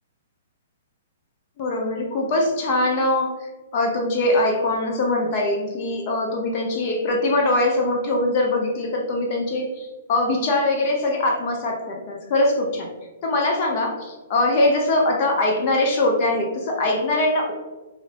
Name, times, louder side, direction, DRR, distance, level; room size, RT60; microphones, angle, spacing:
voice 1, 1.6-12.9 13.2-17.5, left 2 dB, 45° left, 1 dB, 0.8 m, -22 dB
4.9 x 2.8 x 3.3 m, 1.2 s
hypercardioid pair, 125°, 0 cm